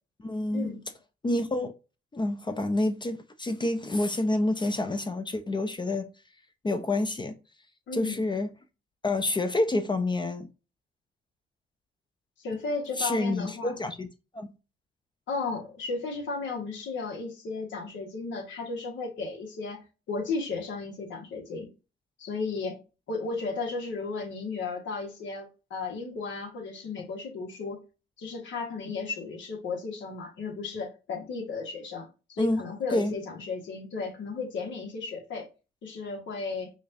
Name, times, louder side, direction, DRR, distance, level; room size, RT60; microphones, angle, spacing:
voice 1, 0.2-0.7 1.2-1.7 2.1-6.1 6.6-7.4 7.9-8.5 9.0-10.5 13.0-14.1 14.3-14.5 32.4-32.6 32.9-33.1, left 2 dB, 25° left, 0.6 m, -28 dB
voice 2, 7.9-8.2 12.4-13.8 15.3-21.7 22.2-22.8 23.1-27.8 28.2-35.5 35.8-36.7, left 4 dB, 70° left, 1.4 m, -34 dB
5.0 x 2.5 x 2.6 m
cardioid pair, 90°, 20 cm